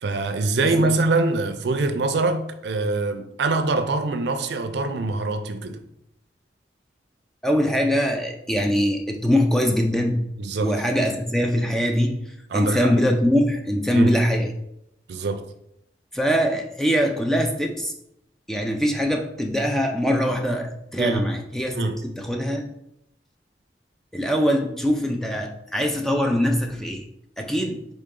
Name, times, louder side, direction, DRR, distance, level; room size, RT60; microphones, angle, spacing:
voice 1, 0.0-5.8 10.4-10.8 12.5-12.9 13.9-14.2 15.1-15.5 21.0-21.3 21.7-22.1, right 3 dB, 75° right, 0.4 m, -24 dB
voice 2, 0.6-0.9 7.4-10.3 10.6-14.5 16.1-17.9 18.5-22.7 24.1-27.0 27.4-27.9, equal, ahead, 0.3 m, -23 dB
3.9 x 3.6 x 3.7 m
head